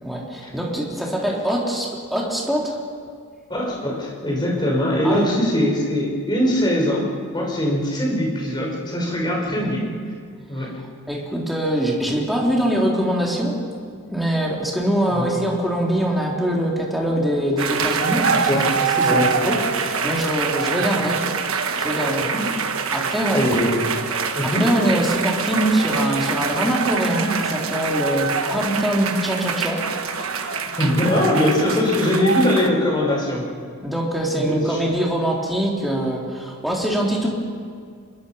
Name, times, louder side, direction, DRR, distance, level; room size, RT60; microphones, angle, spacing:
voice 1, 0.0-2.8 5.0-5.3 9.5-9.7 10.6-10.7 11.1-13.6 14.1-21.3 21.5-22.3 22.9-23.4 24.4-29.8 33.8-37.3, right 1 dB, ahead, -3 dB, 3.4 m, -23 dB
voice 2, 3.5-9.8 10.5-10.8 15.1-15.3 18.3-18.7 19.0-19.3 22.2-22.5 23.1-24.0 24.3-24.7 30.8-33.4 34.3-34.8, left 1 dB, 20° left, -2 dB, 4.9 m, -21 dB
sound 1, 17.6-32.7, right 5 dB, 70° right, 1.3 m, -25 dB
26.0 x 22.5 x 5.6 m, 2.1 s
head